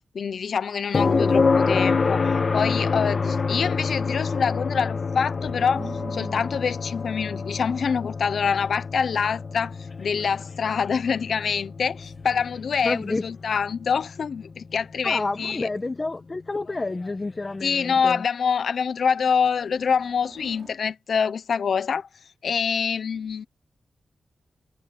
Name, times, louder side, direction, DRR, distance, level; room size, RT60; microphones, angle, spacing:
voice 1, 0.1-2.3 2.5-15.7 17.6-22.1 22.4-23.5, left 6 dB, 80° left, 0.7 m, -25 dB
sound 1, 0.9-14.8 17.0-17.1, left 4 dB, 50° left, 1.7 m, -27 dB
voice 2, 1.1-1.5 12.8-13.2 15.0-18.2, left 3 dB, 30° left, 1.2 m, -29 dB
sound 2, 5.3-13.5 14.7-15.5 19.4-20.8, right 4 dB, 55° right, 3.7 m, -48 dB
wide cardioid pair, 100°, 0 cm